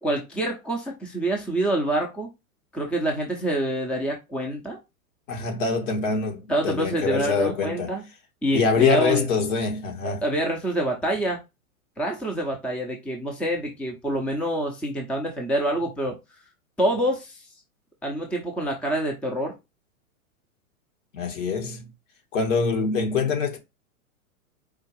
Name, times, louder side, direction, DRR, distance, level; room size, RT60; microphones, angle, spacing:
voice 1, 0.0-2.3 2.7-4.8 6.5-8.0 8.4-9.2 10.0-11.4 12.0-16.1 16.8-17.4 18.0-19.5, right 1 dB, 5° left, 0.6 m, -26 dB
voice 2, 5.3-8.0 8.5-10.2 21.1-21.9 22.3-23.6, left 5 dB, 60° left, 1.8 m, -24 dB
4.7 x 2.4 x 4.6 m
hypercardioid pair, 115°, 43 cm